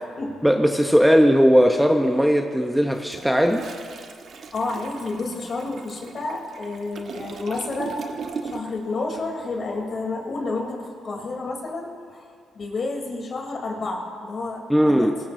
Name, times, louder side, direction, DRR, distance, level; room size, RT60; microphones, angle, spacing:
voice 1, 0.4-3.6 14.7-15.2, equal, ahead, 4 dB, 0.8 m, -18 dB
Toilet flush, 2.9-8.9 9.2-9.4, right 5 dB, 55° right, 1.1 m, -38 dB
voice 2, 4.5-8.0 8.4-12.3 12.5-15.1, left 3 dB, 45° left, 0 dB, 3.2 m, -30 dB
22.5 x 18.0 x 2.7 m, 2.2 s
cardioid pair, 90°, 0 cm